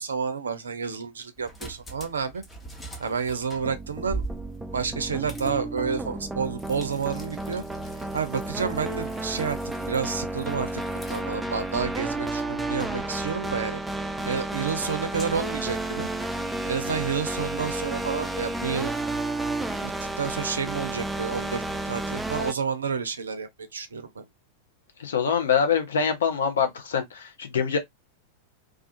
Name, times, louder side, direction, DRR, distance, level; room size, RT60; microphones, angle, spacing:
voice 1, 0.0-2.4 3.0-4.2 4.7-7.6 8.1-9.6 9.9-10.8 11.1-13.8 14.2-16.1 16.6-18.9 19.8-24.2, right 6 dB, 70° right, 0.4 m, -30 dB
preparing cooked pasta, 1.4-19.2, right 2 dB, 10° left, 0.7 m, -44 dB
sound 1, 3.6-22.5, right 2 dB, 5° right, 0.3 m, -32 dB
voice 2, 25.0-27.8, left 7 dB, 65° left, 0.6 m, -24 dB
2.4 x 2.4 x 2.3 m
figure-of-eight pair, 90°, 0 cm